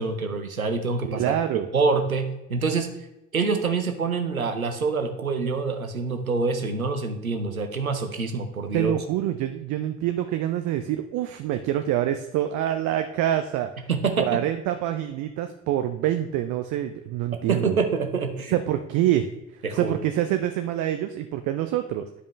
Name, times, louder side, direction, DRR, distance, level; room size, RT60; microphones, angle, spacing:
voice 1, 0.0-1.4 1.7-2.9 3.3-8.9 13.9-14.4 17.5-18.6 19.6-19.9, right 4 dB, 90° right, 6 dB, 0.8 m, -26 dB
voice 2, 1.0-1.7 8.7-13.7 14.2-17.8 18.5-19.3 19.7-22.1, right 12 dB, 45° right, 8 dB, 0.6 m, -26 dB
11.0 x 5.1 x 3.3 m, 0.91 s
figure-of-eight pair, 55°, 41 cm